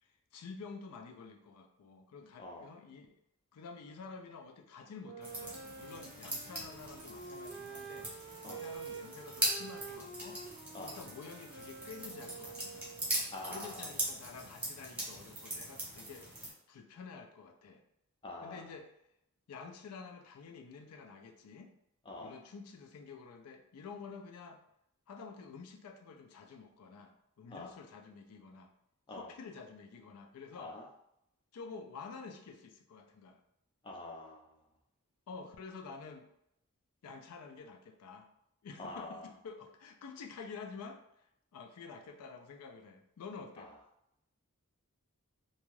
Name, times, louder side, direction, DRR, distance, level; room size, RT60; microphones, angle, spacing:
voice 1, 0.0-3.1 3.5-10.4 10.8-12.9 13.5-16.3 16.7-17.8 18.4-18.9 19.5-21.7 22.2-24.6 25.1-28.7 29.1-30.7 31.5-33.4 35.3-36.3 37.0-38.3 38.6-41.0 41.5-43.7, left 5 dB, 85° left, 4 dB, 0.4 m, -49 dB
Wind instrument woodwind instrument, 5.0-13.3, right 4 dB, 45° right, 0.4 m, -48 dB
sound 1, 5.2-16.5, right 1 dB, 5° right, 0.8 m, -41 dB
voice 2, 13.3-13.9 18.2-18.6 22.1-22.3 27.5-27.7 29.1-29.3 30.5-30.8 33.8-34.5 38.8-39.3, left 2 dB, 20° left, -1 dB, 0.4 m, -45 dB
2.6 x 2.3 x 3.1 m, 0.78 s
head